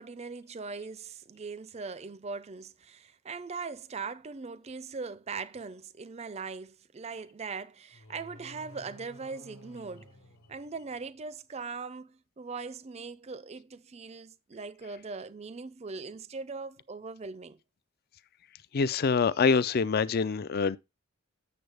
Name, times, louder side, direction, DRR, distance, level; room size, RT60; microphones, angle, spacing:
voice 1, 0.0-10.1 10.5-17.6, right 4 dB, 30° right, 0.5 m, -40 dB
sound 1, 7.9-11.2, equal, 75° left, 1.2 m, -53 dB
voice 2, 18.7-20.8, left 5 dB, 45° left, 0.4 m, -25 dB
8.0 x 7.0 x 3.4 m
head